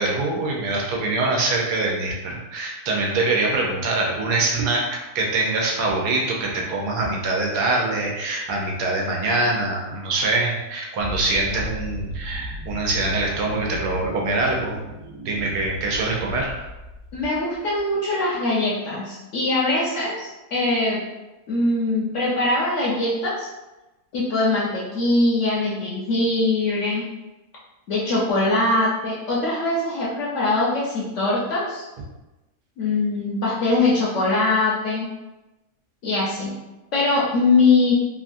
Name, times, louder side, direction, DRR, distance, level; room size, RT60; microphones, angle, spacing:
voice 1, 0.0-14.8 15.2-16.6, right 2 dB, 80° right, -1 dB, 1.2 m, -24 dB
sound 1, 11.0-17.8, equal, 65° right, 0.8 m, -35 dB
voice 2, 17.1-21.0 21.5-23.5 24.1-27.1 27.9-31.8 32.8-35.1 36.0-36.5 36.9-37.9, left 2 dB, 65° left, -6 dB, 0.8 m, -22 dB
3.0 x 2.4 x 2.5 m, 1.0 s
omnidirectional pair, 1.7 m